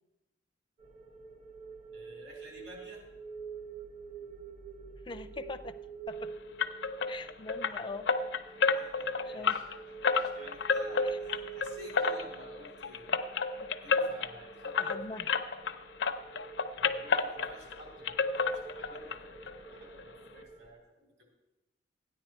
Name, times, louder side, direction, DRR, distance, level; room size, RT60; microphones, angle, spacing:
sound 1, 0.8-20.7, right 5 dB, 40° right, 0.9 m, -47 dB
voice 1, 1.9-3.0 8.7-9.7 10.0-13.2 13.8-15.0 16.8-21.3, left 1 dB, 65° right, 0 dB, 3.9 m, -52 dB
voice 2, 5.0-5.8 6.1-6.3 7.1-8.1 8.6-8.8 9.3-9.5 11.0-11.2 13.6-13.7 14.8-15.3, left 3 dB, 25° left, 8 dB, 0.4 m, -42 dB
sound 2, 6.6-15.7 16.0-17.8 18.0-19.2 19.4-19.5 20.0-20.1 20.4-20.5, left 5 dB, 75° left, 0.6 m, -30 dB
13.5 x 9.8 x 4.4 m, 0.98 s
head